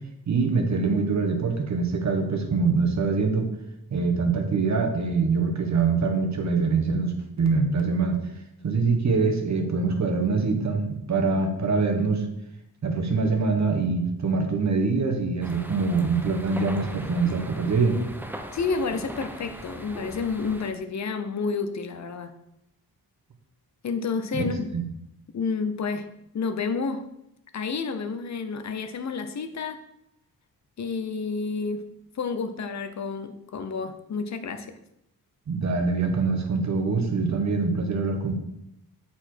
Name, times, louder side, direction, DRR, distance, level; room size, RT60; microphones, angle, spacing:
voice 1, 0.3-3.5 3.9-8.2 8.6-12.2 12.8-18.0 24.3-24.5 24.7-24.8 35.5-38.3, right 4 dB, 45° right, 5 dB, 1.0 m, -24 dB
sound 1, 15.4-20.7, right 1 dB, 5° right, 0.4 m, -40 dB
voice 2, 18.5-22.3 23.8-24.7 25.3-26.0 26.3-27.0 27.5-29.8 30.8-31.8 32.2-34.7, left 5 dB, 45° left, 8 dB, 0.6 m, -30 dB
6.8 x 4.3 x 4.4 m, 0.82 s
wide cardioid pair, 165°, 38 cm